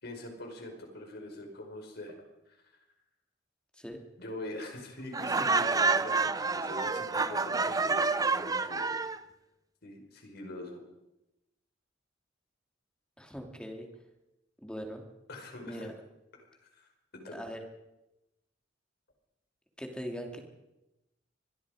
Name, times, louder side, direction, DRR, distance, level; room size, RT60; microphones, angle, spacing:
voice 1, 0.0-2.6 4.2-9.0 9.8-10.8 15.3-15.9 16.3-16.5 16.7-16.9 17.1-17.4, left 1 dB, 55° left, 3 dB, 5.2 m, -43 dB
Laughter, 5.1-9.2, right 4 dB, 20° right, 0.7 m, -28 dB
voice 2, 13.2-13.9 14.6-15.0 15.6-15.9 17.3-17.6 19.8-20.4, equal, 5° left, 3 dB, 2.9 m, -40 dB
25.0 x 21.0 x 5.1 m, 0.94 s
head